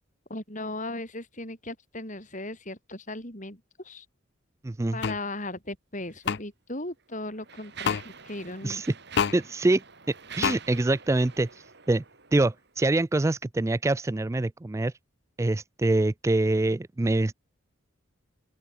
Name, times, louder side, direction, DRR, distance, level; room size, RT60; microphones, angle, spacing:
voice 1, 0.3-4.1 4.9-8.8, left 2 dB, 35° left, 6.3 m, -37 dB
voice 2, 4.6-5.0 8.6-8.9 9.3-9.8 10.1-12.0 12.3-14.9 15.4-17.3, right 2 dB, 15° right, 0.3 m, -25 dB
sound 1, 5.0-5.2 6.3-6.4 7.8-8.0 9.2-9.4 10.4-10.6, left 6 dB, 55° left, 0.5 m, -25 dB
Mechanisms, 6.1-6.3 7.0-12.7, right 7 dB, 55° right, 4.9 m, -47 dB
open air
head